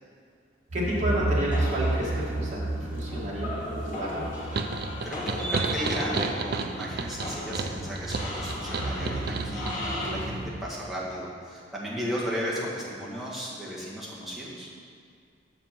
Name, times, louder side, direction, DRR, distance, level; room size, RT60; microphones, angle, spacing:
voice 1, 0.7-4.2, equal, 40° right, -6 dB, 2.1 m, -31 dB
sound 1, 0.7-10.5, right 2 dB, 85° right, 1.1 m, -33 dB
sound 2, 1.5-10.1, left 1 dB, 45° left, 1.7 m, -37 dB
sound 3, 4.5-9.8, right 4 dB, 55° right, 0.5 m, -32 dB
voice 2, 5.0-14.7, equal, ahead, -7 dB, 1.6 m, -35 dB
7.3 x 7.2 x 4.5 m, 2.2 s
head